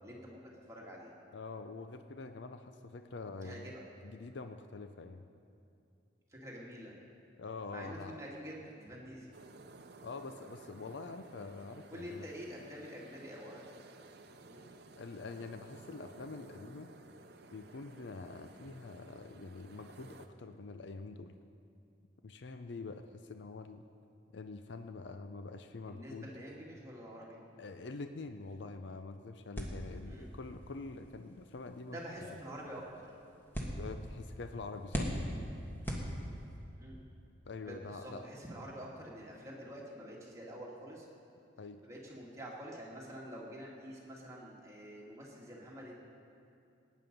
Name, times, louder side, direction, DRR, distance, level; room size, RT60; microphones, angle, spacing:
voice 1, 0.0-0.4 0.7-1.1 3.4-3.8 6.3-7.0 7.7-9.3 11.9-13.6 14.5-14.7 25.9-27.4 30.0-30.3 31.9-33.1 36.8-37.0 37.6-41.1 41.8-45.9, equal, 15° right, -4 dB, 2.1 m, -47 dB
voice 2, 1.3-3.7 4.0-5.2 7.4-8.2 10.0-12.3 15.0-16.9 17.5-21.4 22.2-23.8 24.3-26.3 27.6-32.4 33.8-35.1 37.4-38.3 41.6-41.8, left 3 dB, 65° left, 8 dB, 0.5 m, -45 dB
sound 1, 9.3-20.3, right 3 dB, 60° right, 0.7 m, -55 dB
sound 2, 29.5-36.7, equal, 10° left, 1.5 m, -42 dB
18.5 x 9.4 x 5.3 m, 2.6 s
head